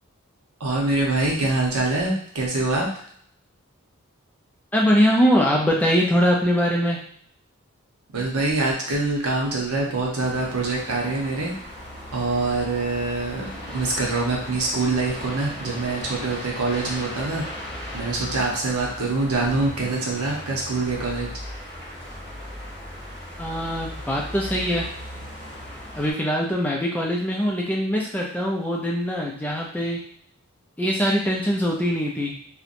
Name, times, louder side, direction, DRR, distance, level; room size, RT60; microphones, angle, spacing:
voice 1, 0.6-2.9 8.1-11.5 12.1-17.4 17.9-21.3, right 3 dB, 80° right, -2 dB, 0.8 m, -25 dB
voice 2, 4.7-7.0 23.4-24.9 25.9-30.0 30.8-32.4, equal, 5° left, -2 dB, 0.4 m, -22 dB
sound 1, 10.2-26.1, equal, 35° right, 1.1 m, -37 dB
2.8 x 2.1 x 2.5 m, 0.63 s
head